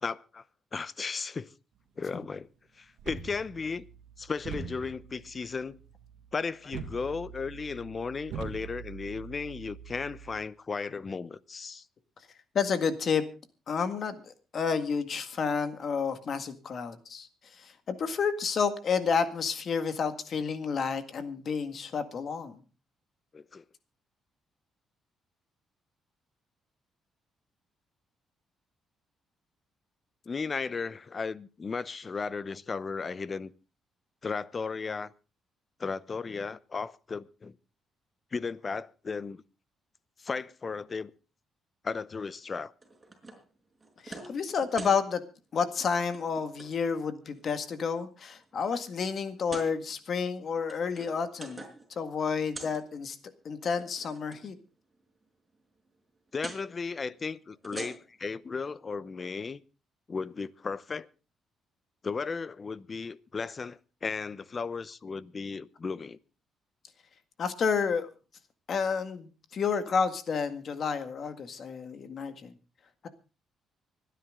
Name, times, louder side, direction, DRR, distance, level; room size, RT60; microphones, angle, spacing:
voice 1, 0.0-0.4 0.7-1.5 2.0-2.5 2.7-3.9 4.2-5.8 6.3-11.9 23.3-23.6 30.3-33.5 34.2-35.1 35.8-37.6 38.3-39.4 40.2-41.1 41.8-42.7 56.3-59.6 60.1-61.1 62.0-66.2, left 4 dB, 35° left, 0.7 m, -35 dB
sound 1, 3.0-10.4, right 6 dB, 85° right, 2.1 m, -44 dB
voice 2, 12.5-13.2 13.7-14.2 14.5-17.3 17.6-22.6 44.0-45.2 45.5-51.6 51.9-53.2 53.5-54.6 67.4-68.1 68.7-72.5 73.0-73.1, left 6 dB, 55° left, 1.8 m, -30 dB
sound 2, 42.8-43.4 43.8-44.3 44.6-45.0 45.7-45.9 46.1-46.7 47.3-47.9 48.4-48.5 49.4-49.7 50.5-51.9 52.1-52.8 53.7-54.4 56.4-56.6 57.5-58.3, right 2 dB, 15° right, 5.1 m, -44 dB
25.0 x 10.0 x 3.7 m
cardioid pair, 90°, 0 cm